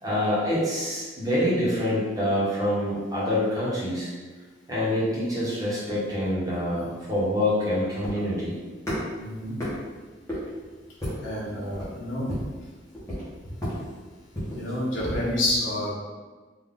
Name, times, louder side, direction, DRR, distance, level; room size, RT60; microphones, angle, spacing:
voice 1, 0.0-4.1 4.7-8.5, left 1 dB, 20° right, -8 dB, 1.2 m, -26 dB
sound 1, 6.0-14.7, equal, 15° left, 1.2 m, -36 dB
voice 2, 9.2-9.6 11.2-12.3 14.5-15.9, left 1 dB, 80° left, -6 dB, 1.2 m, -28 dB
3.8 x 2.7 x 3.8 m, 1.3 s
head